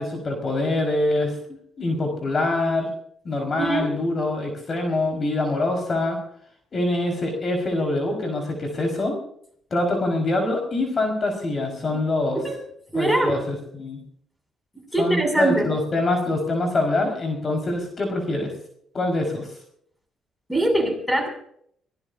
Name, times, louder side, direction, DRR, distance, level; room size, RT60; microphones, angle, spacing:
voice 1, 0.0-1.3 1.8-2.9 3.2-6.2 6.7-9.2 9.7-12.4 12.9-14.0 15.0-18.5 18.9-19.5, left 2 dB, 40° left, 3 dB, 4.9 m, -24 dB
voice 2, 3.6-3.9 11.9-12.0 12.3-12.6 12.9-13.4 14.9-15.7 20.5-21.3, right 1 dB, ahead, 4 dB, 6.9 m, -23 dB
24.5 x 18.0 x 2.7 m, 0.65 s
cardioid pair, 90°, 0 cm